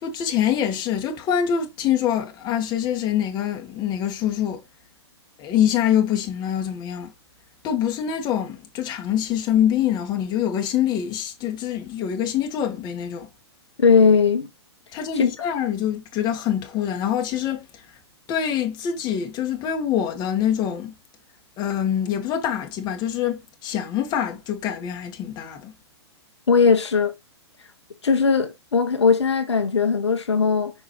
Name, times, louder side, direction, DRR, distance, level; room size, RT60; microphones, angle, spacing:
voice 1, 0.0-4.6 5.4-7.1 7.6-13.3 14.9-17.7 18.3-21.0 21.6-25.7, left 9 dB, 30° left, 1.8 m, -25 dB
voice 2, 13.8-14.5 15.1-15.3 26.5-27.1 28.0-30.7, left 5 dB, 75° left, 1.3 m, -18 dB
6.1 x 4.9 x 3.2 m
figure-of-eight pair, 115°, 14 cm